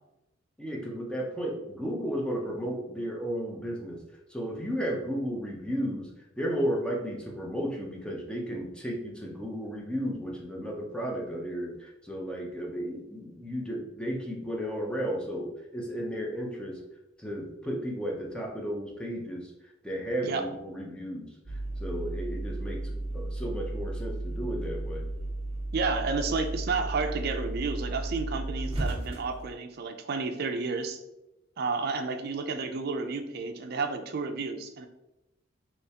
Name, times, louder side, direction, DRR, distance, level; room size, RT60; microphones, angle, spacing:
voice 1, 0.6-4.0 4.3-6.1 6.4-16.8 17.2-19.5 19.8-25.1, equal, 5° left, -1 dB, 0.6 m, -34 dB
sound 1, 21.4-29.5, right 2 dB, 30° right, 1.0 m, -34 dB
voice 2, 25.7-31.0 31.6-34.9, right 4 dB, 55° right, 6 dB, 0.4 m, -31 dB
3.4 x 3.1 x 2.8 m, 0.93 s
head